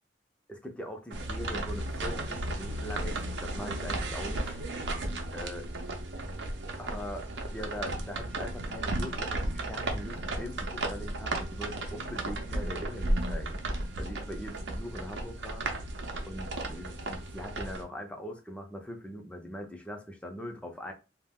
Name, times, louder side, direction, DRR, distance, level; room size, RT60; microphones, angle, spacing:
voice 1, 0.5-4.9 5.3-5.7 6.8-13.6 14.0-15.6 16.3-20.9, equal, 5° left, 0.5 m, -41 dB
sound 1, 1.1-17.8, right 1 dB, 90° right, 0.6 m, -34 dB
2.4 x 2.1 x 3.5 m
head